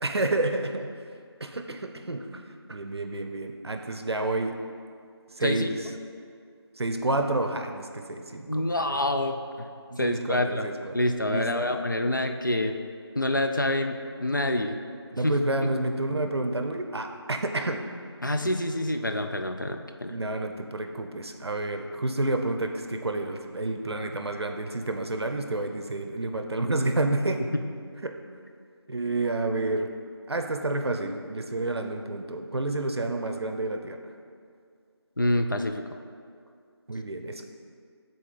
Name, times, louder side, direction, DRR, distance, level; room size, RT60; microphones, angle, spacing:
voice 1, 0.0-0.9 1.4-2.4 2.7-4.6 5.3-5.9 6.8-8.7 9.9-11.0 11.2-11.8 15.1-17.9 20.1-27.4 28.0-28.2 28.9-29.9 30.3-34.0 36.9-37.5, right 2 dB, 70° right, 5 dB, 0.6 m, -29 dB
voice 2, 8.5-9.7 10.0-10.7 10.9-12.7 13.2-14.8 15.2-15.3 18.2-20.1 35.2-35.8, left 1 dB, 45° left, 5 dB, 0.4 m, -27 dB
7.8 x 4.0 x 3.2 m, 2.2 s
figure-of-eight pair, 175°, 14 cm